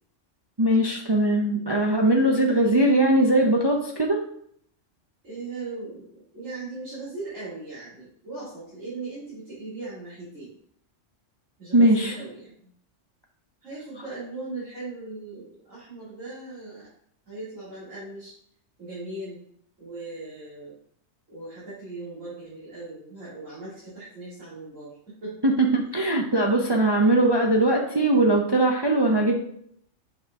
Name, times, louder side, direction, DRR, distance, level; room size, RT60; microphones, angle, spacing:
voice 1, 0.6-4.2 11.7-12.1 25.4-29.3, right 1 dB, 30° right, 1 dB, 0.5 m, -20 dB
voice 2, 5.2-10.5 11.6-12.7 13.6-16.9 17.3-18.3 18.8-19.4 19.8-20.7 21.3-25.5, right 3 dB, 90° right, -10 dB, 3.0 m, -38 dB
6.6 x 5.3 x 3.6 m, 0.67 s
omnidirectional pair, 1.3 m